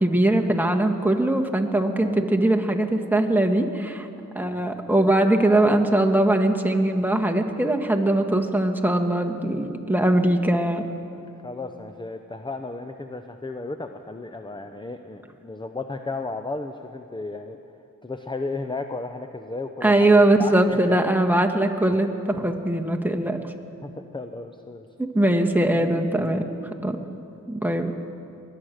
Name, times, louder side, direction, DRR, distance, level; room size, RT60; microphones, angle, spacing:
voice 1, 0.0-4.1 4.3-10.8 19.8-23.5 25.0-26.4 26.8-27.0 27.5-27.9, right 1 dB, 5° right, 3 dB, 1.4 m, -21 dB
voice 2, 1.9-2.2 11.1-17.6 18.0-21.0 23.8-24.9 27.0-27.2, left 3 dB, 15° left, 7 dB, 0.7 m, -34 dB
22.0 x 9.2 x 6.5 m, 2.7 s
cardioid pair, 50°, 33 cm